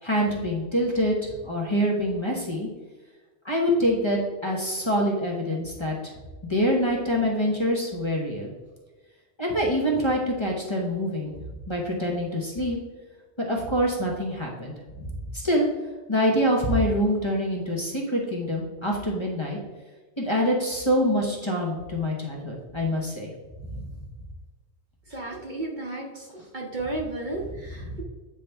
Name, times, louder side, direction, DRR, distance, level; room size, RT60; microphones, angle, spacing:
voice 1, 0.0-1.2 1.4-2.7 3.4-6.0 6.4-8.5 9.4-11.4 11.7-12.8 13.5-15.7 16.1-19.6 20.2-23.3 23.7-23.9 27.8-28.0, equal, 25° left, -2 dB, 1.1 m, -25 dB
voice 2, 25.1-26.2 26.5-28.0, right 2 dB, 45° right, -1 dB, 1.0 m, -33 dB
8.8 x 4.1 x 3.4 m, 1.2 s
omnidirectional pair, 1.2 m